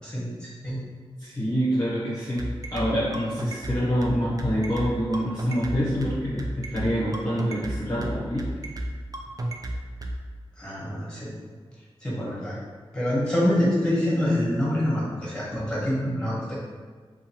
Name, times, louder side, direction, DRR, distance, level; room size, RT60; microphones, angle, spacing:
voice 1, 1.2-8.5 15.5-15.6, equal, 35° left, -9 dB, 0.8 m, -26 dB
sound 1, 2.4-10.2, right 1 dB, 35° right, 0.4 m, -31 dB
voice 2, 10.6-11.3 12.0-12.6 12.9-16.5, left 1 dB, 10° left, -7 dB, 1.2 m, -25 dB
2.8 x 2.4 x 2.8 m, 1.5 s
cardioid pair, 45°, 10 cm